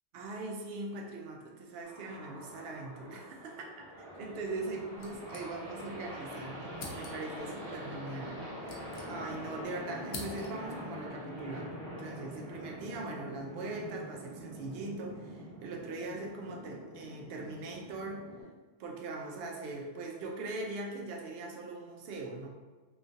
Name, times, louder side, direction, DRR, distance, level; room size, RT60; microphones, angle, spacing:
voice 1, 0.1-3.9 4.2-18.3 18.8-22.5, right 2 dB, 70° right, 0 dB, 0.7 m, -41 dB
sound 1, 1.8-18.4, equal, 35° right, 0.9 m, -44 dB
sound 2, 5.0-6.0 6.2-6.3 6.7-7.4 8.2-9.5 9.8-10.8, left 3 dB, 75° left, 0.9 m, -47 dB
3.1 x 2.3 x 2.6 m, 1.4 s
omnidirectional pair, 1.1 m